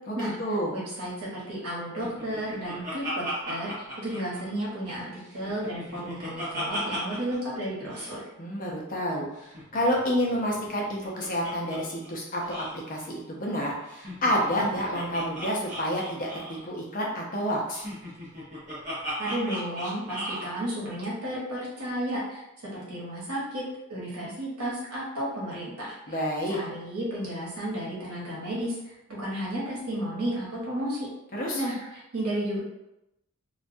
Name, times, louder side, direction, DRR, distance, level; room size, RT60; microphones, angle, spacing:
voice 1, 0.1-0.7 8.4-9.3 9.7-17.8 26.1-26.6 31.3-31.6, equal, 40° left, -2 dB, 0.5 m, -29 dB
voice 2, 0.7-8.2 19.2-22.4 22.7-23.6 23.9-26.2 26.5-31.1 31.5-32.6, right 1 dB, 90° right, -6 dB, 1.0 m, -33 dB
Laughter, 2.0-4.9 5.3-7.4 7.6-7.7 7.9-8.2 9.4-11.8 12.0-12.1 12.4-12.7 13.9-16.7 17.7-20.5, equal, 35° right, 0.7 m, -37 dB
2.3 x 2.2 x 2.6 m, 0.89 s
head